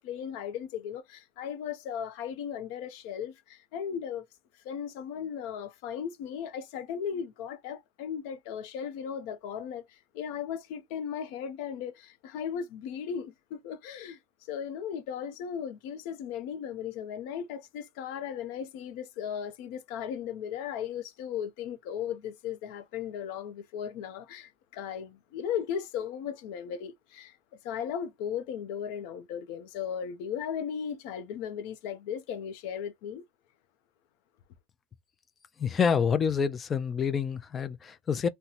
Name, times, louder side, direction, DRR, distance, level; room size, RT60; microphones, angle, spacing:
voice 1, 0.0-4.2 4.6-27.4 27.6-33.2, left 8 dB, 65° left, 0.7 m, -36 dB
voice 2, 35.6-38.3, left 6 dB, 25° left, 0.4 m, -27 dB
2.8 x 2.2 x 4.0 m
supercardioid pair, 140°, 0 cm